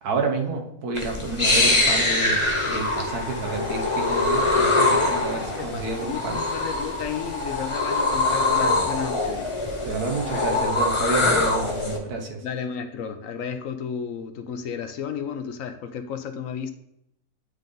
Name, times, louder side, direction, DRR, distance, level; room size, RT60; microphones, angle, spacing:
voice 1, 0.0-6.4 9.8-12.5, right 3 dB, 75° right, 3 dB, 1.6 m, -29 dB
sound 1, 1.0-12.0, left 2 dB, 20° left, 1.2 m, -23 dB
voice 2, 5.4-9.5 10.3-10.4 12.4-16.7, left 7 dB, 70° left, 9 dB, 0.9 m, -33 dB
9.7 x 3.9 x 3.8 m, 0.78 s
omnidirectional pair, 1.6 m